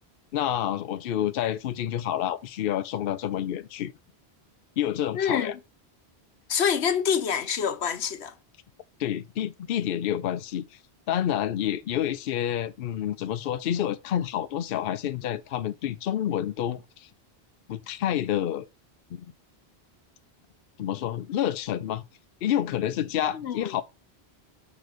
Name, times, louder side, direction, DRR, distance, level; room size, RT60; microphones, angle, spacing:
voice 1, 0.3-3.9 4.8-5.5 9.0-10.8 11.1-17.1 17.7-18.7 19.1-19.3 20.8-22.0 22.4-23.8, left 10 dB, 65° left, 0.7 m, -28 dB
voice 2, 5.1-5.6 6.5-8.3 23.3-23.8, left 7 dB, 85° left, 1.1 m, -26 dB
6.3 x 5.0 x 4.8 m
omnidirectional pair, 1.1 m